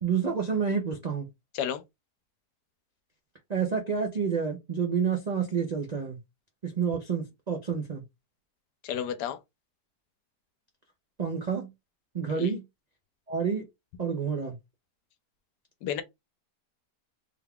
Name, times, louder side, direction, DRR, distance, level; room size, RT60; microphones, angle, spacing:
voice 1, 0.0-1.3 3.5-6.2 6.6-8.0 11.2-11.7 12.1-12.6 13.3-13.6 14.0-14.5, right 6 dB, 75° right, 0.3 m, -29 dB
voice 2, 8.8-9.4 12.3-12.5 15.8-16.0, left 9 dB, 90° left, 1.2 m, -31 dB
3.4 x 2.3 x 3.5 m
omnidirectional pair, 1.8 m